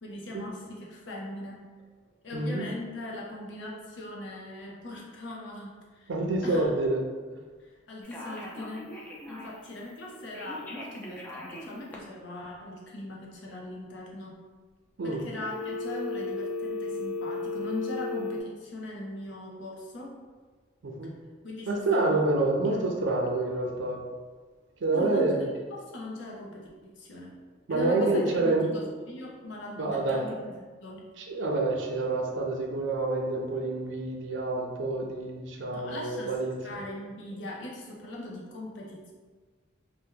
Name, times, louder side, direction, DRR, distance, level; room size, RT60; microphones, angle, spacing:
voice 1, 0.0-1.7 2.2-6.1 6.4-6.6 7.6-8.9 9.3-14.4 15.0-20.2 21.4-22.2 22.5-22.9 24.9-27.3 27.7-31.1 35.7-36.4 36.6-39.1, left 1 dB, 65° left, -3 dB, 0.7 m, -40 dB
voice 2, 2.3-2.6 6.1-7.1 15.0-15.2 20.8-21.1 21.7-24.0 24.8-25.4 27.7-28.8 29.8-30.2 31.3-36.5, right 2 dB, 70° right, 1 dB, 0.5 m, -27 dB
Telephone, 8.0-9.7 10.3-12.0 15.5-18.4, left 3 dB, 10° left, 0.4 m, -35 dB
2.8 x 2.2 x 3.7 m, 1.4 s
head